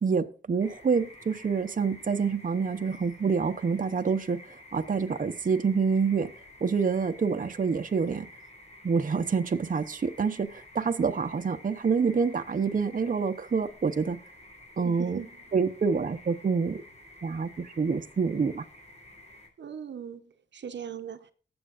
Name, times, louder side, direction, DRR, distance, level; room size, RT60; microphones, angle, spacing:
voice 1, 0.0-6.3 6.6-8.3 8.8-14.2 14.8-15.2 15.5-16.8 17.2-18.7, right 5 dB, 45° right, 0.8 m, -27 dB
sound 1, 0.6-19.5, left 1 dB, 35° left, 5.3 m, -51 dB
voice 2, 14.8-15.3 19.6-21.3, right 8 dB, 75° right, 0.8 m, -39 dB
18.5 x 7.9 x 2.5 m
wide cardioid pair, 100°, 19 cm